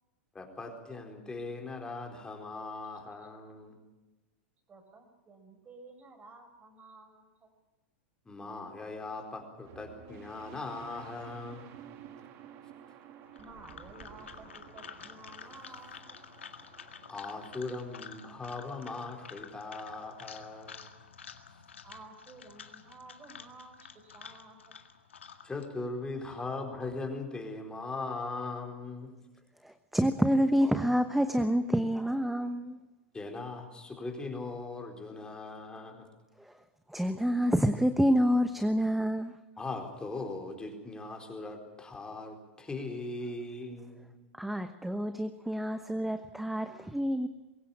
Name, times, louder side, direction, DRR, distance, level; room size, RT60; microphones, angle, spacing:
voice 1, 0.3-3.8 8.3-11.8 17.1-20.9 25.4-29.2 33.1-36.1 39.6-44.1, left 3 dB, 15° left, 3 dB, 4.3 m, -39 dB
voice 2, 4.7-7.5 13.4-16.2 21.8-24.8, right 3 dB, 25° right, 6 dB, 5.5 m, -53 dB
sound 1, 9.6-17.7, right 9 dB, 45° right, 2.7 m, -52 dB
sound 2, 13.3-25.6, left 6 dB, 85° left, 1.9 m, -50 dB
voice 3, 29.6-32.8 36.4-36.5 36.9-39.4 44.3-47.3, equal, 5° right, 9 dB, 1.0 m, -28 dB
23.0 x 16.5 x 8.7 m, 1.1 s
hypercardioid pair, 105°, 6 cm